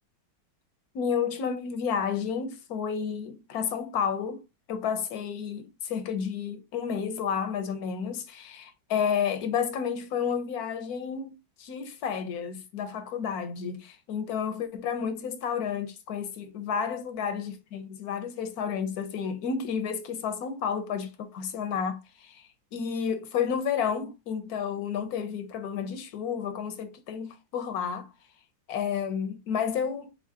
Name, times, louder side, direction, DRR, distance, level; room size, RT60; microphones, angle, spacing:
voice 1, 0.9-4.4 4.7-22.4 22.7-28.1 28.7-30.1, left 7 dB, 60° left, 1.1 m, -31 dB
4.9 x 3.8 x 2.8 m
omnidirectional pair, 2.1 m